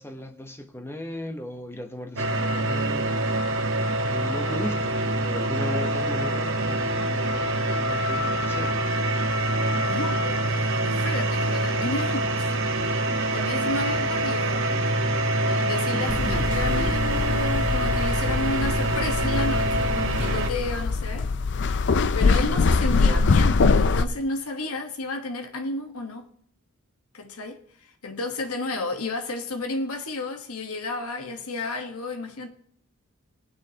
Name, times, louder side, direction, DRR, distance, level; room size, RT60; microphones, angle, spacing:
voice 1, 0.0-3.8 4.1-8.9 14.7-15.4 15.9-17.0 22.8-23.3, left 1 dB, 10° left, 0.9 m, -37 dB
sound 1, 2.2-20.5, right 1 dB, 60° right, 1.3 m, -25 dB
voice 2, 9.8-12.5 13.3-14.7 15.4-21.3 22.1-26.3 27.1-32.5, left 2 dB, 75° left, 1.3 m, -32 dB
sound 2, 16.1-24.0, left 4 dB, 55° left, 0.5 m, -23 dB
18.5 x 9.6 x 2.9 m
head